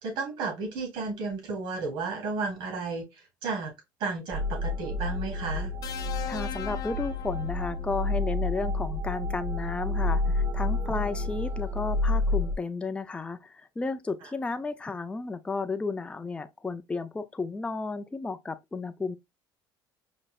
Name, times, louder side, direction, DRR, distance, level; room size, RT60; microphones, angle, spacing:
voice 1, 0.0-3.7 4.0-5.7 14.2-14.3, right 4 dB, 60° right, 2.7 m, -33 dB
sound 1, 4.3-12.5, left 2 dB, 20° right, 0.7 m, -29 dB
sound 2, 5.8-8.1 9.4-9.6, left 9 dB, 45° left, 0.8 m, -40 dB
voice 2, 6.3-19.2, left 3 dB, 10° left, 0.4 m, -33 dB
5.4 x 3.0 x 2.3 m
cardioid pair, 120°, 9 cm